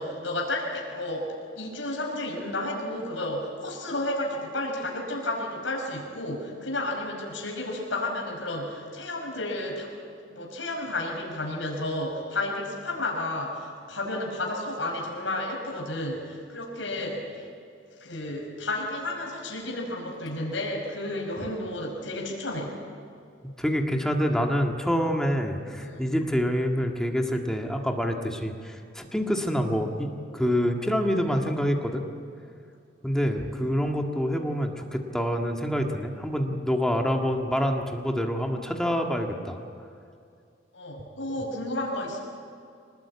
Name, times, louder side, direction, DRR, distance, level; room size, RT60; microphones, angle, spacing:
voice 1, 0.0-9.9 10.3-17.5 18.0-22.8 25.8-26.0 31.2-31.5 33.1-33.3 40.7-42.2, left 1 dB, 80° left, -1 dB, 5.4 m, -32 dB
voice 2, 23.6-32.0 33.0-39.6, equal, 5° left, 2 dB, 1.8 m, -26 dB
25.5 x 19.5 x 8.6 m, 2.4 s
head